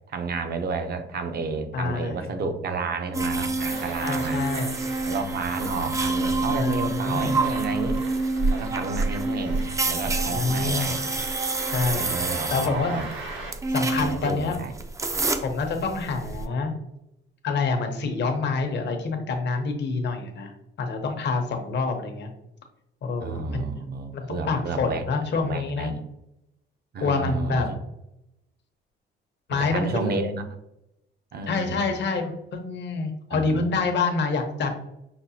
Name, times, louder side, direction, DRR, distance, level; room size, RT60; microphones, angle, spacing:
voice 1, 0.1-4.4 5.0-8.0 8.5-11.0 11.9-13.1 14.0-14.7 23.2-25.0 25.3-26.0 26.9-27.6 29.5-30.5 31.3-31.9 33.3-33.6, right 4 dB, 55° right, 7 dB, 0.6 m, -31 dB
voice 2, 1.7-2.3 4.0-4.7 6.6-7.4 10.1-11.0 11.7-12.1 12.5-13.0 13.7-14.6 15.4-16.7 17.4-20.5 20.8-22.3 23.0-23.7 24.1-25.9 27.0-27.7 29.5-30.2 31.5-34.7, left 4 dB, 60° left, 4 dB, 0.8 m, -27 dB
sound 1, 3.1-16.5, right 3 dB, 15° right, 0.4 m, -27 dB
sound 2, 3.6-13.5, right 2 dB, 75° right, 1.0 m, -40 dB
5.8 x 2.1 x 2.8 m, 0.83 s
cardioid pair, 90°, 20 cm